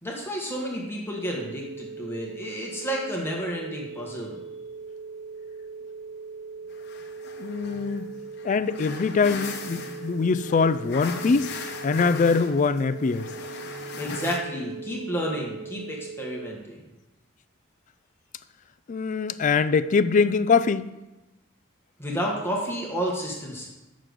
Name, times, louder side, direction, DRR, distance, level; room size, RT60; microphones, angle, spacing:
voice 1, 0.0-4.4 14.0-16.8 22.0-23.7, equal, 10° left, -2 dB, 1.4 m, -31 dB
sound 1, 1.2-16.6, right 4 dB, 50° right, 0.6 m, -40 dB
sound 2, 6.7-14.4, left 4 dB, 55° left, 0.9 m, -38 dB
voice 2, 7.4-8.1 8.4-11.5 11.8-13.3 18.9-20.9, left 5 dB, 40° left, 14 dB, 0.3 m, -23 dB
7.4 x 6.3 x 5.1 m, 1.0 s
head